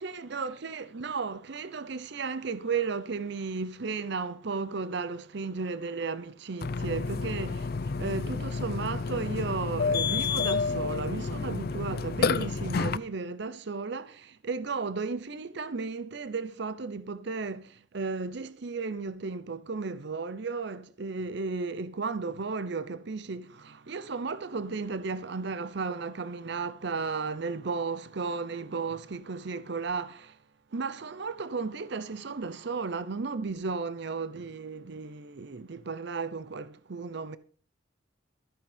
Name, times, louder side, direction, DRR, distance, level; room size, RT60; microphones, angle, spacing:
voice 1, 0.0-30.4 30.7-37.4, right 4 dB, 60° right, 0.7 m, -34 dB
Burping eructation, 6.6-13.0, left 4 dB, 55° left, 0.5 m, -30 dB
13.5 x 8.9 x 5.1 m
head